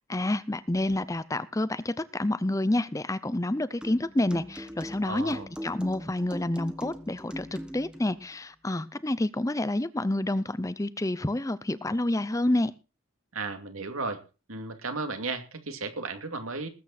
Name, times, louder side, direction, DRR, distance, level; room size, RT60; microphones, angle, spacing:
voice 1, 0.1-12.7, left 1 dB, 15° left, 15 dB, 0.6 m, -28 dB
sound 1, 3.8-8.1, equal, 5° right, 1.3 m, -40 dB
voice 2, 5.1-5.5 13.3-14.2 14.5-16.7, right 3 dB, 80° right, 7 dB, 2.5 m, -34 dB
19.5 x 8.7 x 4.2 m, 0.31 s
head